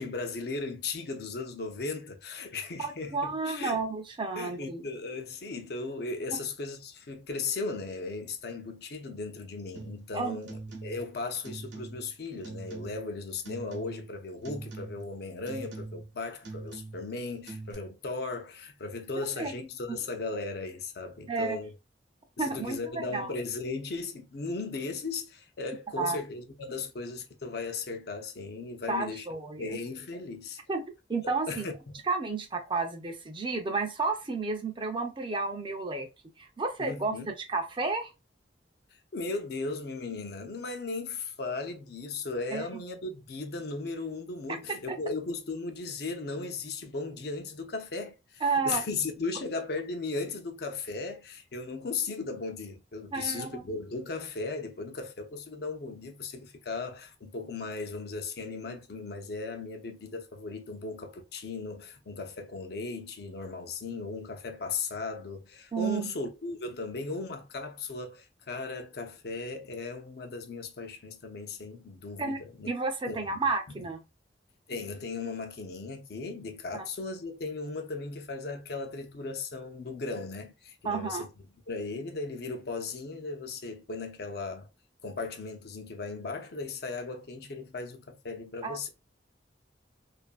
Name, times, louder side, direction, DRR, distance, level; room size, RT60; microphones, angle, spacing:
voice 1, 0.0-3.8 4.4-21.7 22.4-29.3 29.6-30.6 31.5-32.0 36.8-37.3 39.1-72.7 73.1-73.4 73.8-73.9 74.7-81.3 81.7-84.7 85.0-88.9, left 3 dB, 60° left, 0.5 m, -37 dB
voice 2, 2.8-4.8 10.1-10.4 19.4-19.5 19.9-20.0 21.3-21.6 22.4-23.3 26.0-26.2 28.9-29.8 30.7-30.8 31.1-31.7 32.1-36.1 36.4-38.1 42.5-42.7 44.9-45.0 48.4-48.8 53.1-53.6 65.7-66.1 72.2-72.4 72.7-74.0 76.7-76.9 80.8-81.3 88.6-88.9, right 4 dB, 30° right, 0.5 m, -31 dB
sound 1, 9.8-10.1 10.4-11.1 11.4-12.1 12.4-13.1 13.5-14.2 14.4-15.1 15.5-16.1 16.4-17.1 17.5-17.7, right 3 dB, 85° right, 0.8 m, -43 dB
2.5 x 2.5 x 2.2 m
head